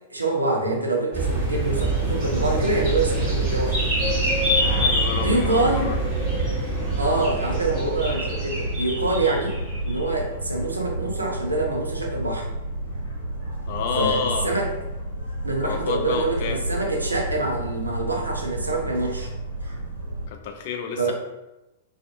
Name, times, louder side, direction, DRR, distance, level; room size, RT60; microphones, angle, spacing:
voice 1, 0.1-3.8 5.2-5.9 7.0-9.6 9.8-12.5 14.0-14.7 15.4-19.3 21.0-21.1, right 2 dB, 80° right, 1 dB, 0.5 m, -25 dB
sound 1, 1.1-10.0, right 1 dB, 30° right, 1.2 m, -26 dB
sound 2, 1.2-20.3, right 1 dB, 80° left, 0.7 m, -31 dB
voice 2, 4.8-6.0 13.7-14.6 15.6-16.6 20.3-21.1, left 6 dB, 45° left, 4 dB, 0.3 m, -29 dB
2.5 x 2.5 x 2.4 m, 0.97 s
figure-of-eight pair, 100°, 0 cm